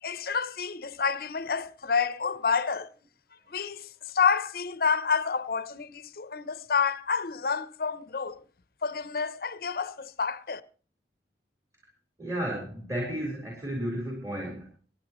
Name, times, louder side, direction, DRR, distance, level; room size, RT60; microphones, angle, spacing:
voice 1, 0.0-2.9 3.5-8.4 8.8-10.6, left 5 dB, 55° left, 0.7 m, -29 dB
voice 2, 12.2-14.8, equal, 20° right, 4.3 m, -33 dB
27.5 x 9.7 x 3.1 m
head